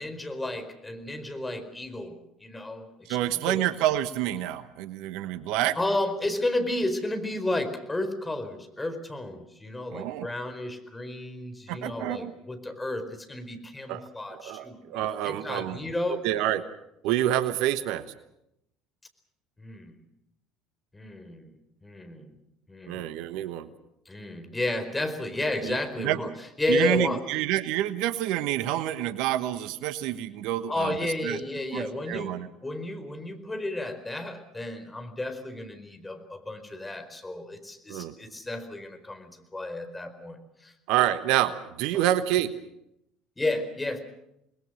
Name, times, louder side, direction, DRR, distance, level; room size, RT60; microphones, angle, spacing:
voice 1, 0.0-3.2 3.4-3.6 5.8-14.8 15.1-16.2 19.6-20.0 20.9-21.5 21.8-22.3 22.7-23.1 24.1-26.3 26.6-27.2 30.7-40.7 43.4-44.0, left 2 dB, 15° left, 8 dB, 4.5 m, -32 dB
voice 2, 3.1-5.8 9.9-10.3 11.7-12.3 13.9-14.0 14.3-15.8 16.1-16.6 17.0-18.0 22.9-23.7 25.6-26.3 26.7-31.0 31.2-31.4 31.7-32.5 37.9-38.1 40.9-42.5, right 13 dB, 65° right, 13 dB, 1.1 m, -28 dB
27.5 x 21.0 x 6.4 m, 0.81 s
hypercardioid pair, 65°, 0 cm